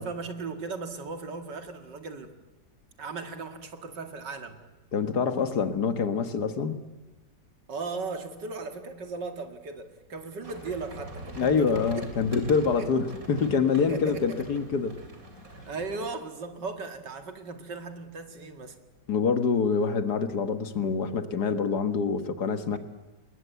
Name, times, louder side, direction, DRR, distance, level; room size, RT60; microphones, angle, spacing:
voice 1, 0.0-2.3 3.0-4.6 7.7-11.8 12.8-13.0 13.8-14.5 15.6-18.8, right 4 dB, 80° right, 7 dB, 2.7 m, -37 dB
voice 2, 4.9-6.8 11.4-15.0 19.1-22.8, left 5 dB, 65° left, 10 dB, 2.0 m, -26 dB
sound 1, 10.4-16.0, right 1 dB, 50° right, 3.8 m, -42 dB
28.0 x 21.5 x 8.3 m, 1.1 s
omnidirectional pair, 1.9 m